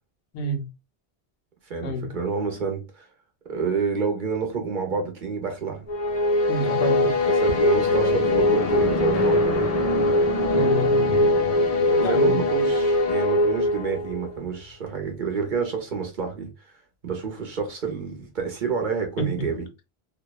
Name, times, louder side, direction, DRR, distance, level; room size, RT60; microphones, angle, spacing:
voice 1, 0.3-0.7 1.8-2.1 6.5-7.1 10.5-11.3 12.0-12.4 19.2-19.3, left 1 dB, 90° left, 0.9 m, -28 dB
voice 2, 1.7-3.1 3.5-5.9 7.0-9.7 11.9-16.5 17.0-19.6, right 5 dB, 50° right, 0.7 m, -29 dB
sound 1, 5.9-14.3, left 1 dB, 45° left, 0.5 m, -21 dB
2.7 x 2.1 x 2.2 m
omnidirectional pair, 1.1 m